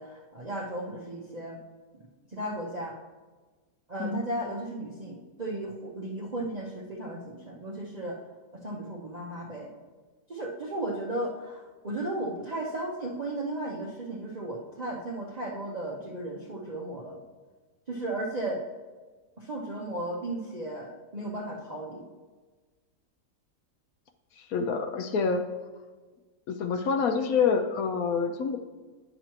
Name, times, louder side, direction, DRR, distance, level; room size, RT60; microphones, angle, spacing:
voice 1, 0.0-1.6 1.9-2.0 2.3-2.9 3.9-8.2 8.5-9.7 10.3-17.2 17.9-18.6 19.4-22.0, right 1 dB, 40° right, -4 dB, 0.6 m, -35 dB
voice 2, 24.4-25.5 26.5-28.6, left 5 dB, 70° left, 7 dB, 0.9 m, -27 dB
9.9 x 6.5 x 3.0 m, 1.3 s
omnidirectional pair, 1.8 m